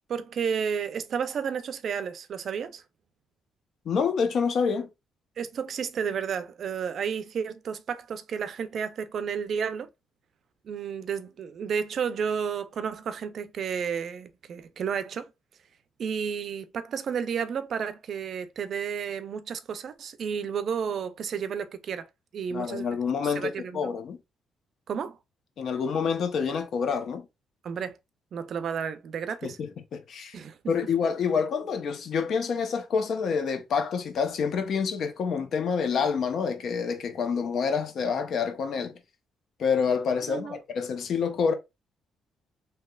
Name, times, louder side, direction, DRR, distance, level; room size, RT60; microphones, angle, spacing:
voice 1, 0.1-2.8 5.4-9.9 10.6-15.3 16.0-22.1 22.3-22.9 23.2-23.9 24.9-25.2 27.6-28.0 28.3-29.6 30.3-30.7 40.3-40.6, right 7 dB, 60° right, 0.4 m, -32 dB
voice 2, 3.9-4.9 22.5-24.2 25.6-27.2 29.4-29.5 29.9-30.3 30.7-38.9 39.6-41.5, left 6 dB, 65° left, 0.7 m, -27 dB
3.2 x 2.8 x 2.3 m
cardioid pair, 90°, 0 cm